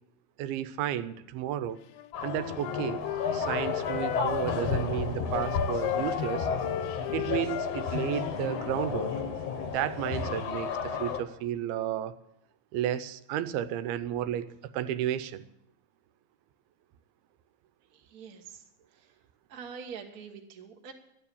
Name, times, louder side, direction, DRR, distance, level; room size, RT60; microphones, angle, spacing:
voice 1, 0.4-1.8 2.2-3.0 3.3-6.5 7.1-9.2 9.7-12.2 12.7-15.4, right 11 dB, 85° right, 12 dB, 2.6 m, -32 dB
Wind instrument woodwind instrument, 1.9-4.9 5.3-8.7, left 14 dB, 85° left, 2.5 m, -37 dB
sound 1, 2.1-11.2, left 6 dB, 65° left, 1.7 m, -32 dB
voice 2, 17.9-19.1 19.5-20.9, right 6 dB, 60° right, 2 dB, 0.9 m, -45 dB
12.5 x 9.6 x 8.5 m, 0.80 s
omnidirectional pair, 4.3 m